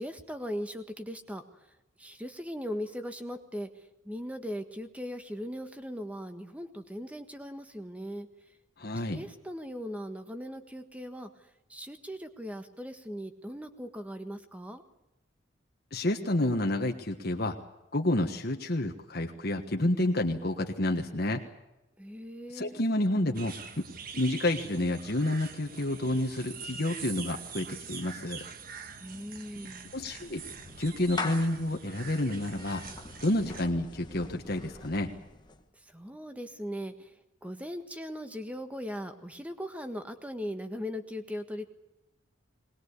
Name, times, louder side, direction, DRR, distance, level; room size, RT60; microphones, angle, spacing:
voice 1, 0.0-1.4 2.0-8.3 9.1-11.3 11.7-14.8 22.0-22.8 29.0-29.8 35.8-37.1 37.4-41.7, equal, 5° right, 7 dB, 1.5 m, -39 dB
voice 2, 8.8-9.2 15.9-17.6 17.9-21.4 22.5-23.9 24.1-28.4 29.9-30.4 30.8-32.8 33.2-35.1, left 1 dB, 50° left, 3 dB, 1.5 m, -29 dB
sound 1, 23.3-33.7, right 5 dB, 45° right, 1.4 m, -44 dB
Clapping / Meow, 29.3-35.7, left 3 dB, 20° left, 1.2 m, -43 dB
20.5 x 20.5 x 8.3 m, 0.95 s
head